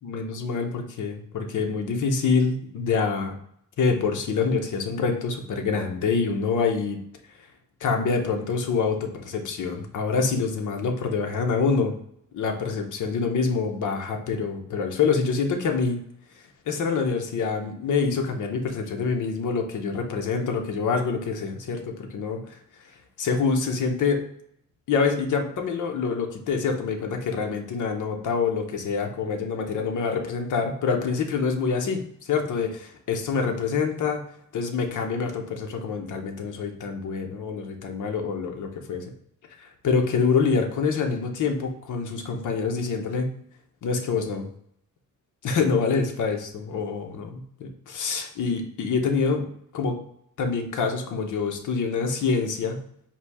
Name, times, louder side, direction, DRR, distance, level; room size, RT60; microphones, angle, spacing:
voice 1, 0.0-3.3 3.8-7.0 7.8-11.9 12.3-16.0 16.7-22.6 23.2-24.2 24.9-39.0 39.6-43.3 43.8-44.5 45.4-49.9 50.4-52.8, left 5 dB, 60° left, 3 dB, 0.8 m, -26 dB
4.4 x 2.7 x 3.4 m, 0.71 s
cardioid pair, 145°, 34 cm